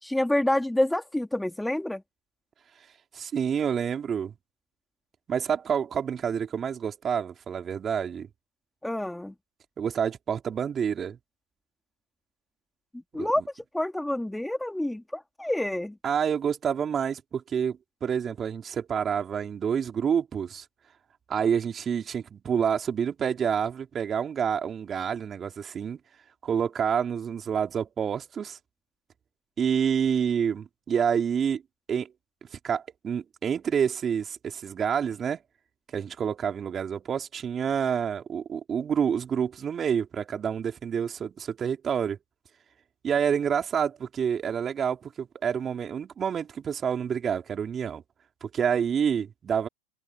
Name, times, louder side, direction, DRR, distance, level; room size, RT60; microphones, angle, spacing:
voice 1, 0.0-2.0 8.8-9.3 13.1-16.0, left 1 dB, 5° left, 2.7 m, -28 dB
voice 2, 3.1-4.3 5.3-8.3 9.8-11.2 13.2-13.3 16.0-20.6 21.3-26.0 26.4-28.6 29.6-31.6 31.9-32.1 32.6-35.4 35.9-42.2 43.0-48.0 48.4-49.7, right 7 dB, 30° right, 3.4 m, -28 dB
hypercardioid pair, 95°, 0 cm